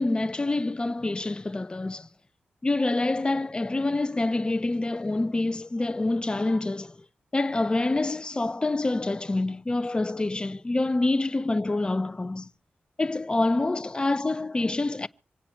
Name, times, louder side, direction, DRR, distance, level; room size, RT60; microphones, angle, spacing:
voice 1, 0.0-2.1 2.6-7.0 7.3-12.5 13.0-15.1, left 2 dB, 25° left, 0.6 m, -26 dB
26.0 x 8.9 x 4.5 m
wide cardioid pair, 85°, 4 cm